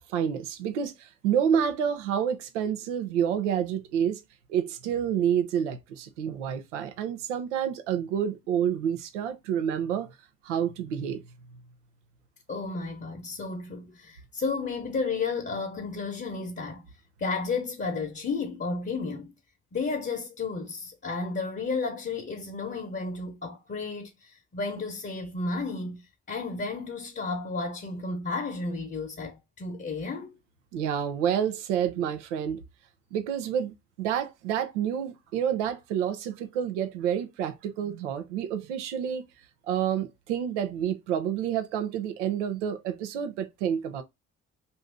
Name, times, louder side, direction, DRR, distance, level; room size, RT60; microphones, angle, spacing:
voice 1, 0.1-4.2 4.5-10.1 10.4-11.2 30.7-32.6 33.1-39.3 39.7-44.0, right 9 dB, 85° right, 0.6 m, -29 dB
voice 2, 12.5-16.9 17.2-19.3 19.7-30.4, left 4 dB, 30° left, 0.8 m, -32 dB
2.6 x 2.6 x 3.4 m
hypercardioid pair, 45°, 35 cm